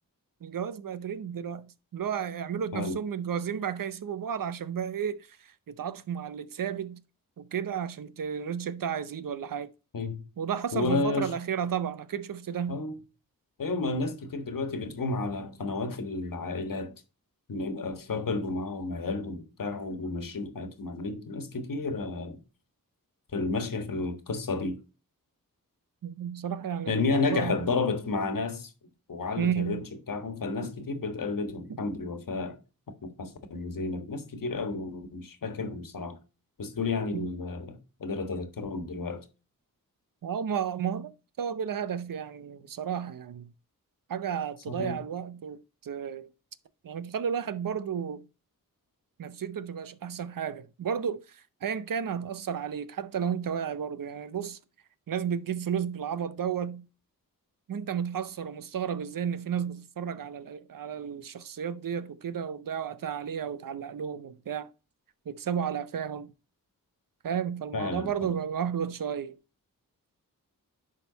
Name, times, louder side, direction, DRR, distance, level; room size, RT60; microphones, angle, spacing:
voice 1, 0.4-7.0 7.4-9.7 10.4-12.8 26.0-27.7 29.4-29.9 37.1-37.4 40.2-43.5 44.1-46.3 46.8-48.3 49.2-54.6 55.1-56.9 57.7-64.7 65.3-66.3 67.2-69.4, right 8 dB, 70° right, 0.7 m, -33 dB
voice 2, 10.7-11.3 12.7-12.9 13.6-16.9 17.5-22.4 23.3-24.8 26.9-28.7 29.1-29.8 30.1-32.6 33.0-36.2 36.6-39.2 44.7-45.0 67.7-68.1, left 3 dB, 65° left, 1.5 m, -31 dB
10.5 x 3.8 x 3.9 m
cardioid pair, 60°, 35 cm